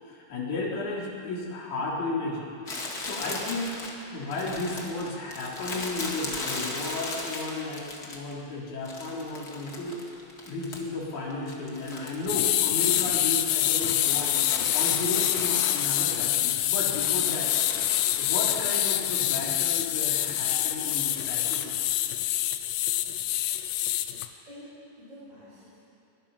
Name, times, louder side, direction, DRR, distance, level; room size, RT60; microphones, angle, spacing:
voice 1, 0.0-2.5 3.0-3.8 4.1-10.0 10.5-14.4 14.7-17.5 18.2-21.7 24.2-24.4, left 2 dB, 55° left, -5 dB, 5.1 m, -34 dB
Crumpling crinkling, 2.7-8.4 8.9-11.0 11.3-16.4 16.7-19.2 19.4-19.5 20.4-21.7, left 2 dB, 30° left, 2.2 m, -38 dB
sound 1, 12.3-24.3, left 13 dB, 80° left, 2.3 m, -26 dB
voice 2, 24.5-25.8, equal, 20° right, -10 dB, 6.9 m, -48 dB
23.0 x 22.0 x 5.7 m, 2.6 s
omnidirectional pair, 4.0 m